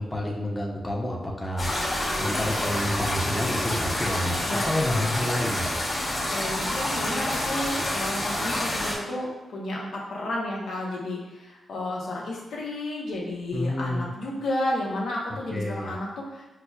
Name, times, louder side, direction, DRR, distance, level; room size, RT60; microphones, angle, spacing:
voice 1, 0.0-1.7 2.2-5.7 13.5-14.1 15.5-15.9, left 1 dB, 10° left, -2 dB, 0.6 m, -29 dB
sound 1, 1.6-9.0, left 1 dB, 35° left, 1.0 m, -28 dB
voice 2, 4.5-5.1 6.3-16.4, left 1 dB, 85° left, -3 dB, 0.7 m, -32 dB
5.6 x 2.0 x 2.3 m, 1.1 s
cardioid pair, 90°, 0 cm